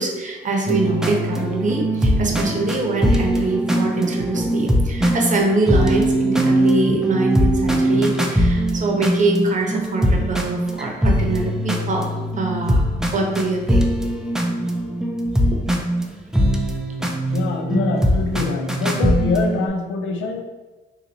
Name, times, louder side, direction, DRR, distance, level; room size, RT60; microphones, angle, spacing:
voice 1, 0.0-12.1 12.4-12.8 13.1-13.8 14.6-14.7 15.7-15.8, right 2 dB, 40° right, 1 dB, 0.8 m, -23 dB
sound 1, 0.7-19.7, equal, 5° right, 0.4 m, -21 dB
voice 2, 17.3-20.4, left 4 dB, 75° left, 5 dB, 0.5 m, -24 dB
4.0 x 2.7 x 2.8 m, 1.2 s
cardioid pair, 90°, 20 cm